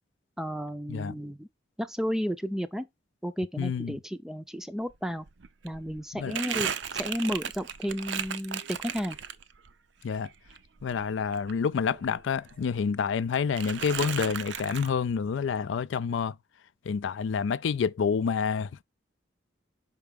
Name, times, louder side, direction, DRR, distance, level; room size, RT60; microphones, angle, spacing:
voice 1, 0.4-1.5 1.8-2.9 3.2-5.3 5.6-9.2, equal, 5° right, 0.4 m, -33 dB
voice 2, 3.6-4.0 6.2-6.4 10.0-10.3 10.8-16.4 16.9-18.8, left 6 dB, 80° left, 0.4 m, -28 dB
Crumpling crinkling, 4.9-5.0 5.3-9.7 10.1-12.2 12.5-13.2 13.6-14.9, right 8 dB, 70° right, 0.6 m, -36 dB
5.9 x 4.5 x 3.5 m
head